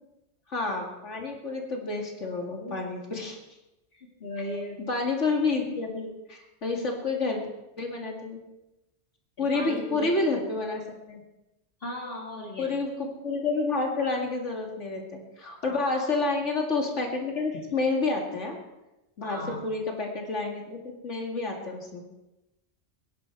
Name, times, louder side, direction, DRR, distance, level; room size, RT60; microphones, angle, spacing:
voice 1, 0.5-3.4 4.9-7.4 7.8-8.4 9.4-10.8 11.1-11.2 12.6-18.6 19.2-22.0, left 3 dB, 90° left, 1 dB, 2.6 m, -29 dB
voice 2, 3.9-4.9 9.5-10.1 11.8-12.8 15.7-16.2 19.2-19.6, left 1 dB, 55° left, -1 dB, 2.4 m, -37 dB
22.0 x 10.5 x 4.6 m, 0.95 s
omnidirectional pair, 1.2 m